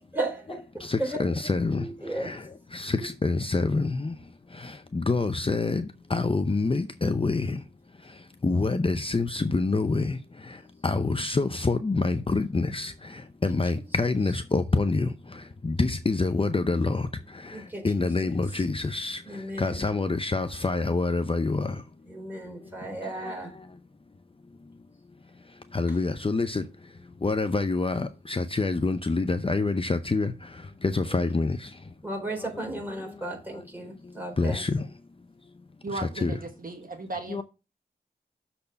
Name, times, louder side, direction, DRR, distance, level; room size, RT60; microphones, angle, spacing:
voice 1, 0.1-1.3 1.7-2.3 3.0-3.1 17.5-18.7 19.2-19.8 22.0-23.6 25.9-26.0 31.1-31.2 32.0-34.6, right 1 dB, 10° right, 4.2 m, -35 dB
voice 2, 0.8-7.7 8.0-21.9 22.5-23.8 24.6-24.7 25.4-31.9 32.4-33.4 34.0-35.0 35.9-36.5 37.3-37.4, left 3 dB, 30° left, 0.6 m, -28 dB
voice 3, 35.8-37.4, right 2 dB, 55° right, 1.2 m, -36 dB
6.9 x 4.3 x 6.6 m
wide cardioid pair, 55°, 17 cm